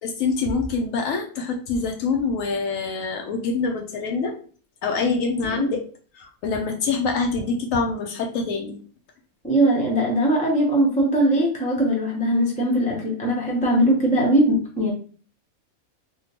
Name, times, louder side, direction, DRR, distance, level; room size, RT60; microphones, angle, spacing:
voice 1, 0.0-4.3 4.8-5.8 6.1-8.8, left 4 dB, 75° left, 3 dB, 1.0 m, -25 dB
voice 2, 5.0-5.7 9.4-14.9, right 1 dB, 10° left, -2 dB, 0.6 m, -21 dB
3.6 x 2.1 x 2.8 m, 0.42 s
omnidirectional pair, 1.5 m